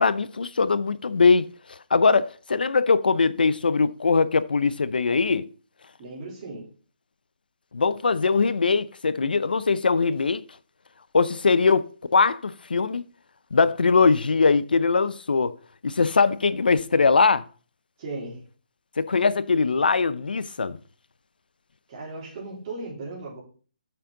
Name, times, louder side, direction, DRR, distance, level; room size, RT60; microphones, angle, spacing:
voice 1, 0.0-1.5 1.9-5.5 7.7-10.4 11.1-13.0 13.5-15.5 15.8-17.4 19.0-20.8, left 4 dB, 75° left, 0.6 m, -21 dB
voice 2, 6.0-6.7 18.0-18.4 21.9-23.4, right 2 dB, 30° right, 3.5 m, -36 dB
6.9 x 6.4 x 3.9 m
hypercardioid pair, 165°, 5 cm